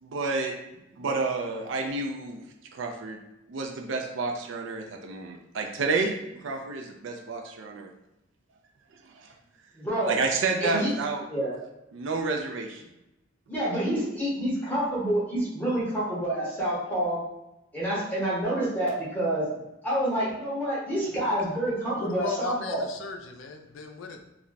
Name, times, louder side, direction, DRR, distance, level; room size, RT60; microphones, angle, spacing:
voice 1, 0.0-0.5 1.0-2.4 2.7-3.2 3.5-7.9 9.0-9.3 10.1-11.2 11.9-12.8, right 3 dB, 65° right, 2 dB, 0.4 m, -30 dB
voice 2, 9.8-10.1 10.6-10.9 11.3-11.5 13.5-17.2 17.7-19.5 19.8-22.9, right 1 dB, 10° left, -8 dB, 0.8 m, -28 dB
voice 3, 22.0-24.2, left 5 dB, 70° left, 4 dB, 0.4 m, -37 dB
2.4 x 2.1 x 3.8 m, 0.92 s
head